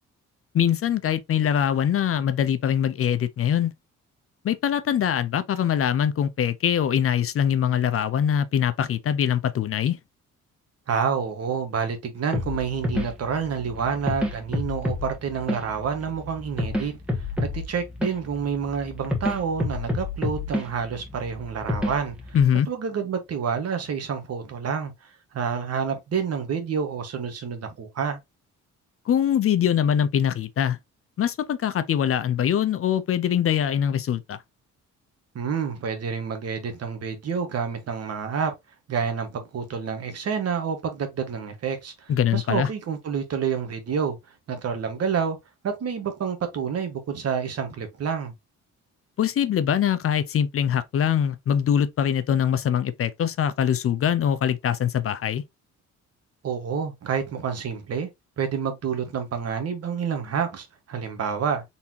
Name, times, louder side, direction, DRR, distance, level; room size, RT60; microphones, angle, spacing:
voice 1, 0.5-3.7 4.4-10.0 22.3-22.7 29.1-30.8 31.2-34.4 42.1-42.7 49.2-55.4, left 9 dB, 50° left, 0.5 m, -23 dB
voice 2, 10.9-22.4 22.7-28.2 35.3-38.5 38.9-44.2 44.5-45.4 45.6-48.3 56.4-58.1 58.4-61.6, right 6 dB, 55° right, 1.4 m, -28 dB
sound 1, 12.3-22.4, left 2 dB, 5° right, 1.6 m, -30 dB
4.1 x 3.5 x 2.8 m
cardioid pair, 90°, 30 cm